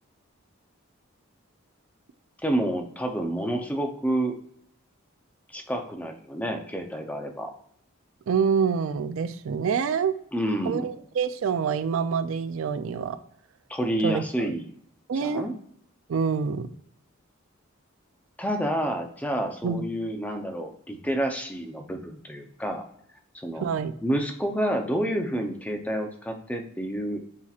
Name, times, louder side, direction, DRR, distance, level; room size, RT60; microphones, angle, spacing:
voice 1, 2.4-4.4 5.5-7.5 10.3-10.9 13.7-14.7 15.2-15.5 18.4-22.8 23.4-23.7 24.0-27.2, right 1 dB, 5° left, 4 dB, 0.5 m, -29 dB
voice 2, 8.3-10.1 10.6-13.2 14.0-14.5 15.1-15.5 16.1-16.7 19.6-19.9 23.6-23.9, right 6 dB, 75° right, 12 dB, 0.4 m, -26 dB
7.2 x 2.8 x 2.4 m, 0.67 s
head